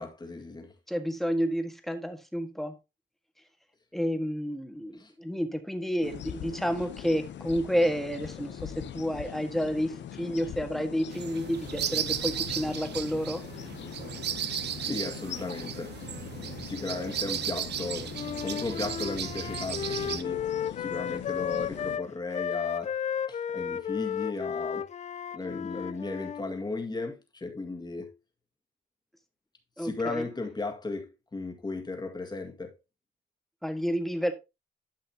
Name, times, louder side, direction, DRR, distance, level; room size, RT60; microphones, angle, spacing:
voice 1, 0.0-0.7 5.0-5.1 14.8-16.0 16.6-20.4 20.8-23.0 23.3-24.9 25.3-28.1 29.8-32.7, left 3 dB, 20° left, 1.9 m, -35 dB
voice 2, 0.9-2.8 3.9-13.4 29.8-30.2 33.6-34.3, equal, ahead, 1.6 m, -30 dB
sound 1, 6.0-22.0, left 10 dB, 65° left, 0.8 m, -42 dB
sound 2, 11.1-20.2, right 10 dB, 60° right, 0.7 m, -35 dB
Wind instrument woodwind instrument, 18.1-26.4, left 8 dB, 35° left, 0.4 m, -34 dB
12.0 x 5.6 x 2.8 m
cardioid pair, 90°, 20 cm